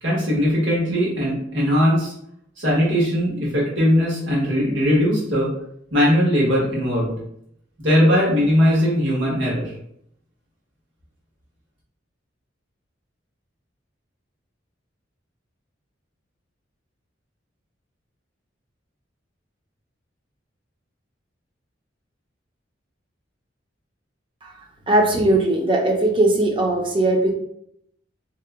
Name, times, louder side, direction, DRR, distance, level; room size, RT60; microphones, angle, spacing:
voice 1, 0.0-2.1 2.6-5.5 5.9-7.2 7.8-9.7, equal, 75° right, -5 dB, 1.4 m, -19 dB
voice 2, 24.9-27.3, right 2 dB, 25° right, 1 dB, 0.5 m, -19 dB
2.8 x 2.2 x 3.5 m, 0.71 s
head